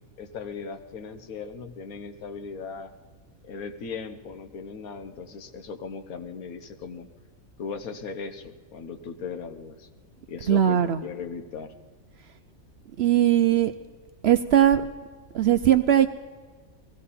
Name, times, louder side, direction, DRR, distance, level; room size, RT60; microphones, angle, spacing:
voice 1, 0.2-2.9 3.4-7.1 7.6-9.9 10.3-11.7, left 5 dB, 80° left, 8 dB, 1.5 m, -38 dB
voice 2, 10.5-11.0 13.0-13.7 14.2-14.8 15.3-16.1, right 11 dB, 65° right, 9 dB, 0.7 m, -19 dB
17.0 x 15.5 x 4.2 m, 1.4 s
omnidirectional pair, 1.5 m